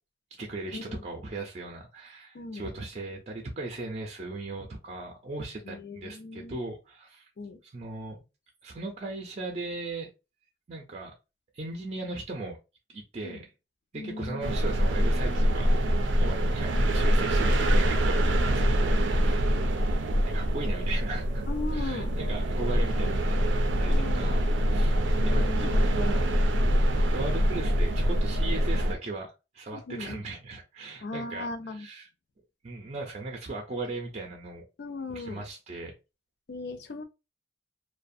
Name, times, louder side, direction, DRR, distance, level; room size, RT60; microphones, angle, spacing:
voice 1, 0.4-7.3 7.7-8.2 8.6-10.1 10.7-11.1 11.5-12.6 12.9-13.4 13.9-15.7 16.2-19.5 20.2-21.4 21.7-23.4 23.8-24.9 25.2-26.2 27.0-32.1 32.6-34.6 35.1-36.0, right 2 dB, 40° right, 0.5 m, -38 dB
voice 2, 2.3-2.6 5.7-6.6 7.4-7.6 13.2-13.4 13.9-14.6 17.0-17.2 21.5-22.1 23.9-24.6 25.1-26.0 29.7-30.3 31.0-31.9 34.8-35.4 36.5-37.0, left 3 dB, 60° left, 0.4 m, -38 dB
sound 1, 14.4-29.0, equal, 90° right, 0.4 m, -25 dB
2.4 x 2.1 x 2.5 m
head